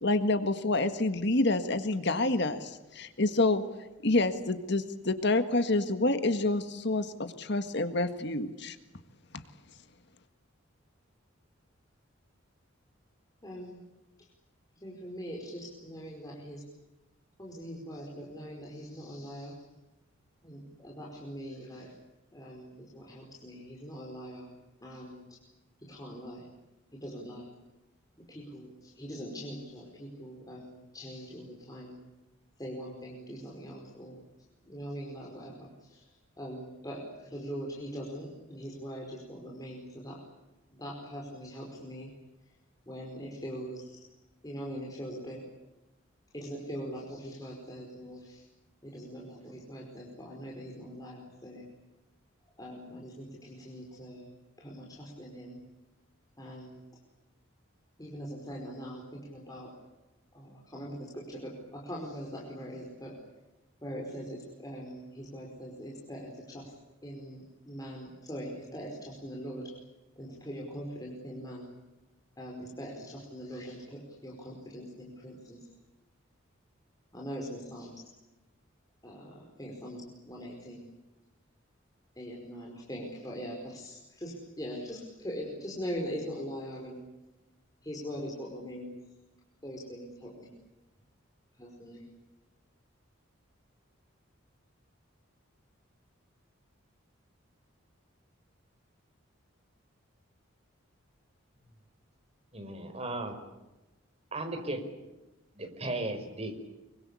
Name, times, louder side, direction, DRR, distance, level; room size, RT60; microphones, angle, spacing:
voice 1, 0.0-3.6 4.0-8.8, left 2 dB, 55° left, 9 dB, 1.8 m, -28 dB
voice 2, 13.4-13.9 14.7-16.7 17.4-19.6 20.4-21.9 22.3-24.5 24.8-25.4 25.8-26.5 26.9-27.5 28.2-32.0 32.6-34.2 34.6-40.2 40.7-42.1 42.9-44.0 44.4-45.4 46.3-48.4 48.8-51.7 52.6-54.3 54.6-55.6 56.4-56.8 58.0-59.8 60.3-63.2 63.8-66.7 67.0-69.7 70.2-71.7 72.4-75.7 77.1-78.0 79.0-80.8 82.1-87.0 87.8-89.0 89.6-90.5 91.6-92.0, equal, 20° left, -2 dB, 5.1 m, -42 dB
voice 3, 102.5-103.4 104.3-104.8 105.5-106.5, right 2 dB, 30° right, 6 dB, 5.0 m, -35 dB
25.5 x 24.0 x 8.5 m, 1.0 s
head